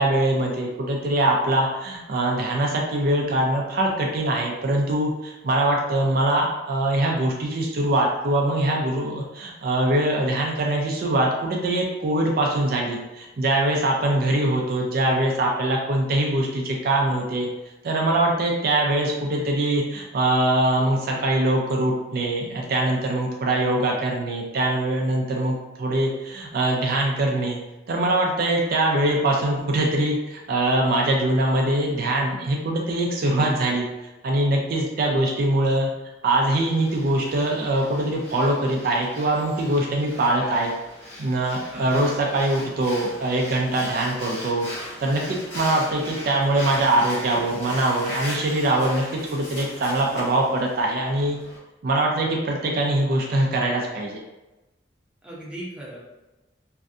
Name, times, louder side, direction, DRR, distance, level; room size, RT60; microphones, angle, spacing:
voice 1, 0.0-17.5 17.8-27.6 27.9-33.9 34.2-35.9 36.2-40.7 41.2-44.7 45.0-51.4 51.8-54.2, right 1 dB, 55° right, -1 dB, 0.4 m, -23 dB
Breathing, 36.5-51.6, left 1 dB, 70° left, 1.1 m, -39 dB
voice 2, 55.2-56.0, right 1 dB, 5° right, -7 dB, 0.6 m, -38 dB
2.5 x 2.2 x 2.4 m, 1.0 s
head